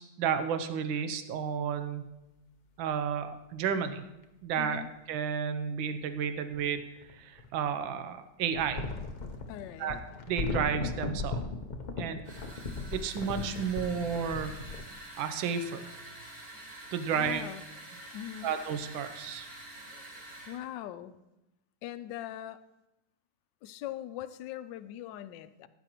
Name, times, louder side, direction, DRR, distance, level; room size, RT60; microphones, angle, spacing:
voice 1, 0.0-2.0 2.8-4.0 4.4-6.8 7.1-8.9 9.8-10.0 10.3-11.4 12.0-12.2 12.9-14.6 15.2-15.9 16.9-17.4 18.4-19.5, right 7 dB, 85° right, 9 dB, 1.5 m, -32 dB
sound 1, 4.2-4.3 6.5-7.7 8.5-14.8, left 3 dB, 60° left, 0.4 m, -37 dB
voice 2, 4.6-4.9 9.5-10.0 17.1-17.6 18.1-18.5 20.5-21.1 21.8-22.6 23.6-25.7, left 12 dB, 75° left, 12 dB, 1.2 m, -41 dB
sound 2, 12.2-20.6, right 1 dB, 50° right, 3.0 m, -47 dB
16.5 x 9.8 x 3.0 m, 0.96 s
omnidirectional pair, 2.1 m